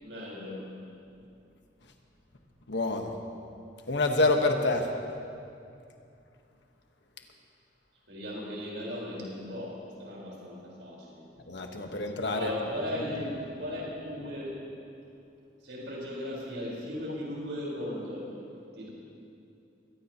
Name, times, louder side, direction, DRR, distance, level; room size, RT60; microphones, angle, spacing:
voice 1, 0.0-0.6 8.1-11.2 12.2-14.5 15.6-18.3 18.8-18.9, left 1 dB, 70° right, -5 dB, 4.5 m, -37 dB
voice 2, 2.7-3.1 3.9-4.9 11.5-12.5, left 2 dB, 65° left, 3 dB, 1.3 m, -27 dB
22.5 x 16.5 x 3.0 m, 2.5 s
head